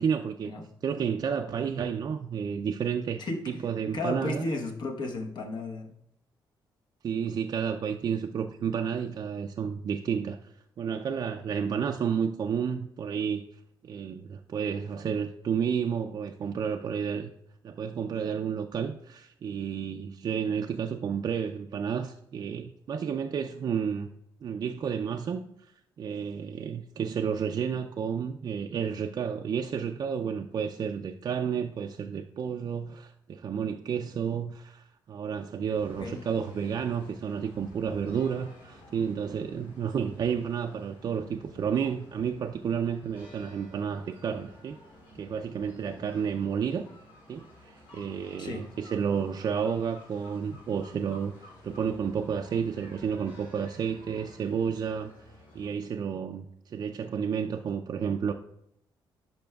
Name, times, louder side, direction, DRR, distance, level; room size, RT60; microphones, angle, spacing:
voice 1, 0.0-0.5 0.8-4.5 7.0-13.4 13.8-17.3 17.6-24.1 24.4-25.7 26.0-44.8 45.2-46.9 47.3-55.1 55.5-58.3, right 7 dB, 50° right, 4 dB, 0.4 m, -31 dB
voice 2, 3.9-5.9 36.0-36.2 48.4-48.7, left 2 dB, 55° left, 3 dB, 1.1 m, -33 dB
sound 1, 35.7-55.7, left 1 dB, 80° left, 2.8 m, -52 dB
10.5 x 5.6 x 2.3 m, 0.76 s
cardioid pair, 105°, 9 cm